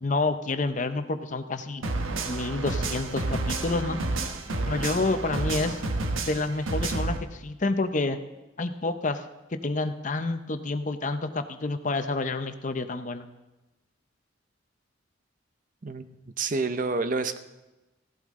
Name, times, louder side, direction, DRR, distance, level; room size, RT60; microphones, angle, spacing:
voice 1, 0.0-1.8 2.3-4.0 4.7-5.8 6.2-8.2 8.6-9.2 9.5-13.3, left 3 dB, 40° left, 9 dB, 0.7 m, -28 dB
sound 1, 1.8-7.2, right 2 dB, 90° right, 1.2 m, -30 dB
voice 2, 16.4-17.4, right 3 dB, 40° right, 10 dB, 0.6 m, -28 dB
16.0 x 12.0 x 3.7 m, 1.0 s
head